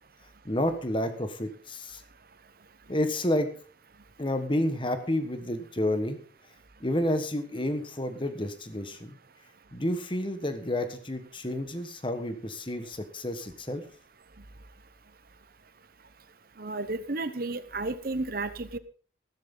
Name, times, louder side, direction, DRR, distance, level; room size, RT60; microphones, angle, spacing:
voice 1, 0.4-2.0 2.9-3.5 4.2-6.2 6.8-9.1 9.7-13.8, left 1 dB, 25° left, 9 dB, 1.5 m, -30 dB
voice 2, 16.6-18.8, right 2 dB, 50° right, 13 dB, 1.0 m, -32 dB
15.0 x 13.0 x 4.0 m, 0.40 s
head